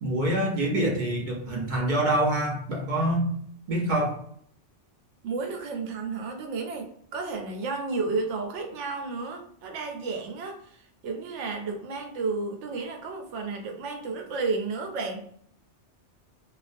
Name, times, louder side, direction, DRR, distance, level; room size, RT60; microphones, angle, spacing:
voice 1, 0.0-3.3 3.7-4.2, right 1 dB, 55° right, -1 dB, 0.6 m, -26 dB
voice 2, 5.2-15.2, right 4 dB, 90° right, 3 dB, 0.9 m, -32 dB
2.4 x 2.1 x 2.5 m, 0.64 s
omnidirectional pair, 1.2 m